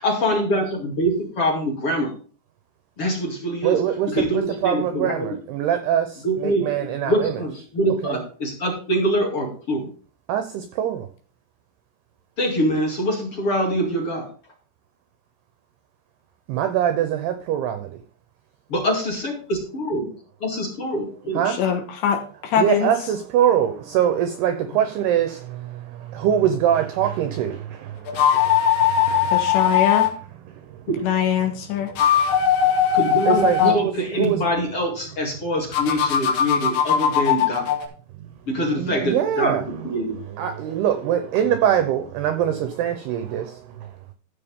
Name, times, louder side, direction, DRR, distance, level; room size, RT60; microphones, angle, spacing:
voice 1, 0.0-2.1 3.0-3.8 4.1-5.3 6.2-9.9 12.4-14.3 18.7-20.1 20.4-21.4 30.9-31.0 32.9-33.4 33.7-37.6 38.5-40.2, equal, 35° left, 2.4 m, -24 dB
voice 2, 3.6-7.4 8.0-8.2 10.3-11.1 16.5-18.0 21.3-21.6 22.6-28.5 29.1-29.4 30.5-30.8 33.3-34.5 38.2-38.3 38.8-39.9 40.4-43.9, right 10 dB, 80° right, 2.3 m, -23 dB
voice 3, 21.5-22.9 29.3-30.1 31.0-31.9 33.6-33.8, left 8 dB, 75° left, 3.2 m, -22 dB
sound 1, 28.1-30.1 31.8-33.8 35.7-37.9, left 8 dB, 90° left, 4.3 m, -19 dB
14.0 x 6.9 x 3.7 m
omnidirectional pair, 5.7 m